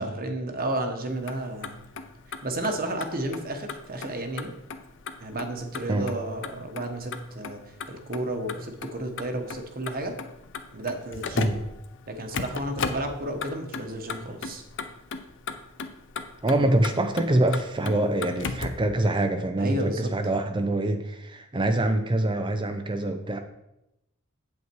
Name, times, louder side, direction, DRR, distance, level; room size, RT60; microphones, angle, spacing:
voice 1, 0.0-1.8 2.4-4.5 5.2-7.6 7.9-10.1 10.7-11.6 12.1-14.6 19.6-20.1, right 1 dB, 45° right, 5 dB, 1.2 m, -32 dB
Motor vehicle (road), 1.1-18.9, left 4 dB, 60° left, 0.7 m, -37 dB
voice 2, 16.4-23.4, right 1 dB, 20° right, 6 dB, 0.6 m, -25 dB
8.4 x 8.0 x 4.6 m, 0.88 s
head